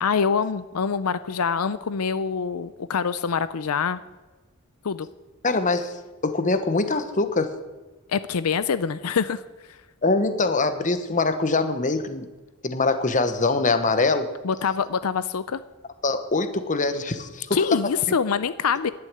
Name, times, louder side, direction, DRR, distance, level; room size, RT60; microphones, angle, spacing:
voice 1, 0.0-4.0 4.8-5.1 8.1-9.4 14.4-15.6 17.5-18.9, left 6 dB, 90° left, 14 dB, 0.6 m, -25 dB
voice 2, 5.4-5.9 6.2-7.5 10.0-12.3 12.6-14.3 16.0-17.6, left 3 dB, 35° left, 10 dB, 1.1 m, -23 dB
11.0 x 9.5 x 8.9 m, 1.2 s
head